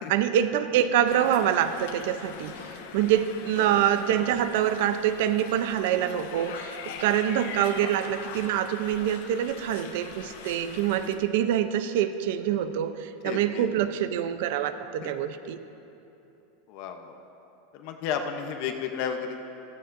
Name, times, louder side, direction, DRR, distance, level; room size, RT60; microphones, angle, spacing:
voice 1, 0.1-2.5 2.9-15.6, right 10 dB, 65° right, 11 dB, 0.6 m, -25 dB
sound 1, 1.1-11.1, left 6 dB, 75° left, 1.1 m, -42 dB
voice 2, 13.2-13.7 15.0-15.1 16.7-17.1 17.7-19.4, left 7 dB, 50° left, 5 dB, 0.8 m, -33 dB
16.0 x 14.5 x 2.6 m, 2.9 s
supercardioid pair, 165°, 0 cm